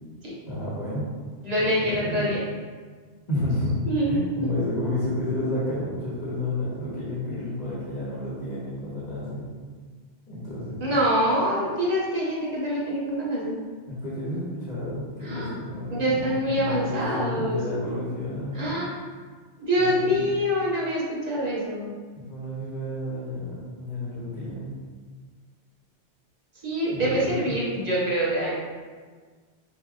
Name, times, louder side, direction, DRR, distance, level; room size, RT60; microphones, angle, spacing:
voice 1, 0.4-1.1 1.3-2.3 3.3-3.8 4.1-9.5 10.3-11.0 13.9-18.8 19.8-20.2 22.2-24.7 26.9-27.6, left 1 dB, 40° left, -9 dB, 1.3 m, -31 dB
voice 2, 1.4-2.4 3.9-4.5 7.3-7.4 10.8-13.6 15.2-15.5 15.9-17.6 18.5-18.9 19.6-21.9 26.6-28.5, equal, 40° right, -6 dB, 1.0 m, -25 dB
5.6 x 2.7 x 2.4 m, 1.5 s
omnidirectional pair, 1.1 m